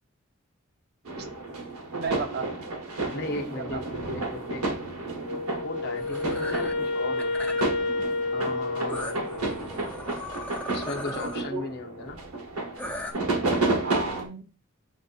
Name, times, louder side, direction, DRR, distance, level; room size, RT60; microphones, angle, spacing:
sound 1, 1.0-14.3, right 2 dB, 85° right, 1.0 m, -32 dB
voice 1, 1.9-2.7 3.3-3.8 11.5-11.6 13.8-14.5, right 4 dB, 45° right, 6 dB, 0.6 m, -34 dB
voice 2, 3.1-4.9 5.6-7.6 8.3-9.2 10.6-12.2, left 2 dB, 50° left, 2 dB, 0.7 m, -37 dB
Wind instrument woodwind instrument, 5.2-9.6, left 3 dB, 75° left, 1.0 m, -30 dB
sound 2, 6.0-6.7 7.2-7.8 8.9-11.4 12.8-13.1, left 1 dB, 5° left, 0.4 m, -37 dB
7.6 x 2.6 x 2.4 m, 0.32 s
head